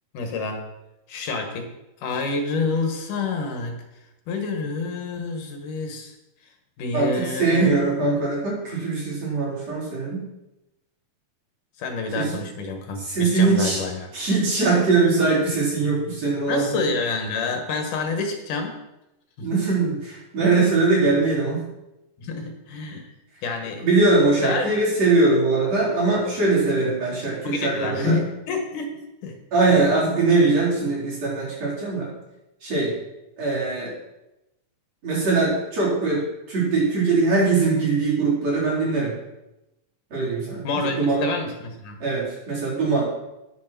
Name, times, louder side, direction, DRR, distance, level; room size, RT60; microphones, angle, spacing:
voice 1, 0.1-0.6 1.1-1.7 2.0-3.8 4.3-6.1 6.8-7.7 8.0-8.2 11.8-14.1 16.5-18.8 19.4-19.5 22.2-23.1 23.4-23.8 24.4-24.7 27.4-29.4 29.7-29.8 40.6-42.0, left 4 dB, 80° left, 4 dB, 3.0 m, -28 dB
voice 2, 6.9-10.2 12.1-12.4 13.0-13.8 14.1-16.8 19.4-21.7 23.8-28.2 29.5-32.1 32.6-32.9 33.4-33.9 35.0-39.1 40.1-41.3 42.0-43.1, right 3 dB, 55° right, -6 dB, 5.1 m, -21 dB
10.0 x 7.4 x 6.0 m, 0.94 s
omnidirectional pair, 3.6 m